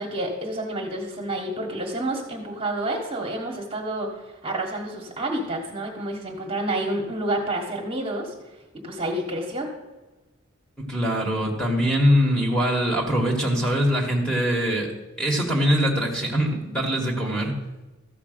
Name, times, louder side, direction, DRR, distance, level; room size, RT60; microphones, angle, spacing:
voice 1, 0.0-8.3 8.8-9.7, right 1 dB, 25° right, 0 dB, 1.5 m, -29 dB
voice 2, 10.8-14.9 15.2-17.5, equal, 5° left, -1 dB, 1.6 m, -22 dB
14.0 x 5.0 x 6.8 m, 1.1 s
head